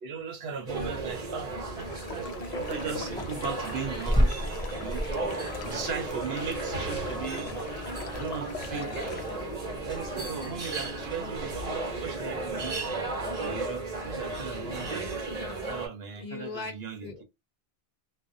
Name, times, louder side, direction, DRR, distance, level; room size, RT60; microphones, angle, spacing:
voice 1, 0.0-7.5 8.1-9.1 9.8-12.8 13.4-15.3 15.5-17.2, right 6 dB, 70° right, 0.9 m, -38 dB
sound 1, 0.7-15.9, right 2 dB, 40° right, 0.9 m, -35 dB
sound 2, 1.8-9.4, left 7 dB, 80° left, 0.8 m, -43 dB
sound 3, 2.6-11.2, equal, 5° left, 0.5 m, -34 dB
voice 2, 4.9-5.3 8.6-9.9 14.1-14.2 14.5-14.7 16.2-17.2, left 4 dB, 55° left, 0.5 m, -42 dB
2.5 x 2.2 x 2.5 m
omnidirectional pair, 1.1 m